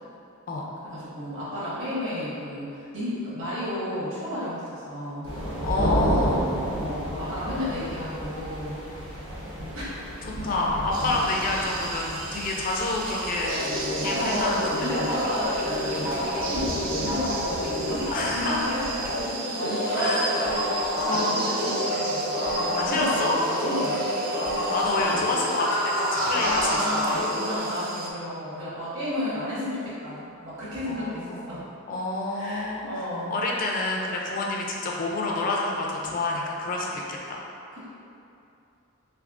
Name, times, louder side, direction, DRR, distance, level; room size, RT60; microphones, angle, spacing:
voice 1, 0.9-5.3 6.7-8.8 9.7-9.8 10.4-10.5 14.1-21.8 22.1-24.0 25.0-25.3 26.1-31.6 32.3-33.4 37.7-37.8, left 1 dB, 65° right, -10 dB, 1.3 m, -32 dB
sound 1, 5.2-19.2, equal, 80° right, 1.2 m, -33 dB
voice 2, 5.6-6.4 10.2-13.6 14.0-15.0 18.1-18.7 20.0-20.3 21.0-21.5 22.8-23.4 24.3-26.8 27.1-27.3 30.9-31.5 31.9-32.8 33.3-37.4, left 2 dB, 40° left, -2 dB, 0.4 m, -28 dB
sound 2, 10.9-28.1, right 3 dB, 40° right, 0.3 m, -35 dB
sound 3, 13.4-19.3 19.6-27.6, left 1 dB, 75° left, 0.6 m, -29 dB
3.4 x 3.3 x 2.5 m, 2.7 s
head